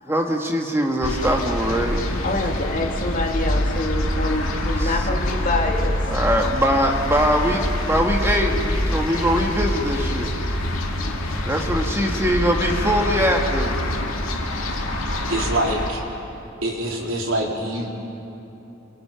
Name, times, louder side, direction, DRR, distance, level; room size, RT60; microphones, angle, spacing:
voice 1, 0.1-2.5 4.8-5.1 6.1-10.3 11.4-13.8, equal, 10° right, 2 dB, 1.7 m, -22 dB
sound 1, 1.0-15.9, left 1 dB, 85° left, 2.5 m, -25 dB
voice 2, 2.2-6.0 11.1-11.2 11.6-11.7, left 2 dB, 40° left, 1 dB, 2.8 m, -26 dB
voice 3, 15.3-16.0 16.6-17.9, right 1 dB, 75° right, -1 dB, 3.7 m, -25 dB
29.0 x 23.5 x 5.9 m, 2.9 s
head